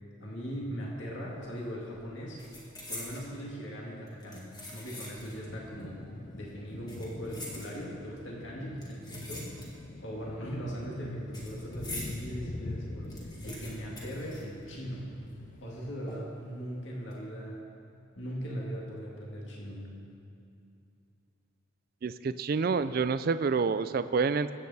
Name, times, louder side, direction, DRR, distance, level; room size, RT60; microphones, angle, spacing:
voice 1, 0.2-2.4 2.9-6.1 6.3-9.7 10.0-15.1 15.6-17.6 18.2-20.0, equal, 60° left, -4 dB, 2.0 m, -39 dB
sound 1, 1.3-1.6 1.9-3.3 4.1-5.5 5.8-5.9 6.7-8.1 8.8-10.0 10.3-12.2 12.6-12.7 12.9-15.0 15.3-15.4 16.1-16.5 16.9-17.1, left 1 dB, 20° left, 2.1 m, -45 dB
sound 2, 5.5-15.9, left 2 dB, 40° left, 0.5 m, -44 dB
voice 2, 22.0-24.5, right 5 dB, 45° right, 12 dB, 0.3 m, -28 dB
21.0 x 8.6 x 4.1 m, 2.6 s
head